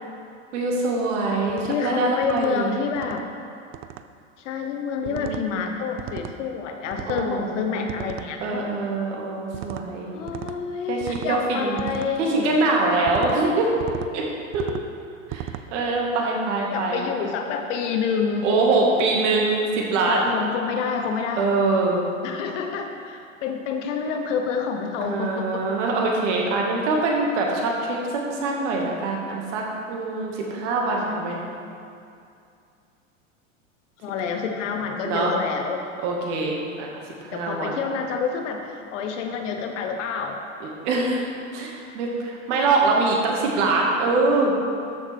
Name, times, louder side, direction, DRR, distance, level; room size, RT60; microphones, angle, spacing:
voice 1, 0.5-2.7 5.0-5.5 7.1-7.8 8.4-10.1 10.9-11.8 12.2-13.7 14.1-14.2 14.5-14.7 15.3-17.0 18.4-20.3 21.4-22.0 25.0-31.4 35.0-35.3 36.0-37.8 40.6-44.5, right 3 dB, 65° right, -1 dB, 2.0 m, -24 dB
sound 1, 1.5-1.8 2.2-2.5 3.0-3.2 3.7-4.0 5.1-5.5 6.0-6.4 6.9-7.3 7.9-8.3 9.5-9.9 10.3-10.6 11.0-11.3 11.8-12.1 13.1-13.4 13.8-14.1 14.5-14.9 15.3-15.7, right 12 dB, 35° right, 0.4 m, -35 dB
voice 2, 1.6-3.3 4.4-8.7 10.1-12.5 16.7-18.5 20.1-21.5 22.2-25.7 31.1-31.8 34.0-35.8 37.3-40.4, left 6 dB, 65° left, 4 dB, 1.1 m, -28 dB
13.0 x 6.4 x 3.5 m, 2.4 s
hypercardioid pair, 95°, 39 cm